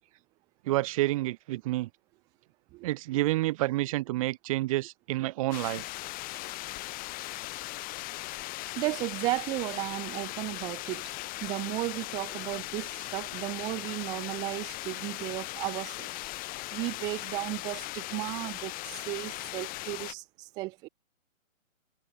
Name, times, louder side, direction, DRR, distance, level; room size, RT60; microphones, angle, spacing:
voice 1, 0.7-1.9 2.8-5.8, right 17 dB, 25° right, 1.1 m, -29 dB
sound 1, 5.5-20.1, left 20 dB, 20° left, 4.0 m, -38 dB
voice 2, 8.8-11.1 11.4-16.1 16.7-20.9, right 21 dB, 10° right, 0.7 m, -34 dB
figure-of-eight pair, 135°, 41 cm